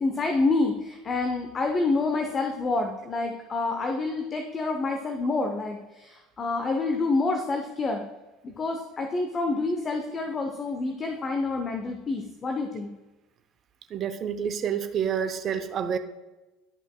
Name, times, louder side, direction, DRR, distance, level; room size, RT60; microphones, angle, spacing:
voice 1, 0.0-8.1 8.4-12.9, left 3 dB, 30° left, 4 dB, 0.8 m, -28 dB
voice 2, 13.9-16.0, right 8 dB, 45° right, 11 dB, 0.6 m, -28 dB
12.5 x 5.4 x 2.3 m, 1.1 s
hypercardioid pair, 70°, 0 cm